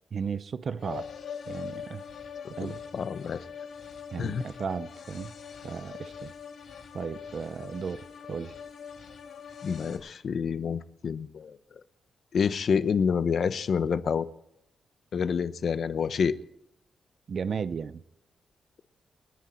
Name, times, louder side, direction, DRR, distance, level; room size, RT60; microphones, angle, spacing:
voice 1, 0.1-1.1 1.5-2.0 2.5-2.8 4.1-5.3 5.6-6.3 6.9-8.5 17.3-18.0, right 6 dB, 50° right, 0.6 m, -35 dB
sound 1, 0.8-10.0, left 7 dB, 75° left, 3.2 m, -43 dB
voice 2, 2.6-3.4 4.2-4.4 9.6-11.6 12.3-14.3 15.1-16.4, left 6 dB, 55° left, 0.8 m, -28 dB
29.0 x 10.0 x 4.4 m
wide cardioid pair, 135°, 0 cm